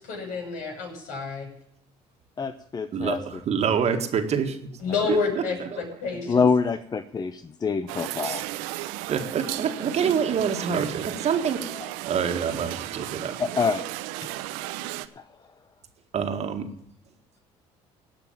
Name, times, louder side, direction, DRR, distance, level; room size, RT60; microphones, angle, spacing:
voice 1, 0.0-1.5 4.8-6.4, left 4 dB, 70° left, 1 dB, 6.5 m, -29 dB
voice 2, 2.4-3.2 6.3-8.4 13.4-13.8 15.2-15.3, left 5 dB, 30° left, 11 dB, 0.8 m, -25 dB
voice 3, 2.9-4.7 5.1-5.2 5.6-5.8 8.2-8.4 9.1-11.6 12.0-13.4 16.1-16.7, right 7 dB, 50° right, 6 dB, 1.9 m, -26 dB
sound 1, 7.9-15.1, right 16 dB, 85° right, 0.7 m, -35 dB
17.0 x 5.8 x 7.5 m, 0.76 s
supercardioid pair, 80°, 14 cm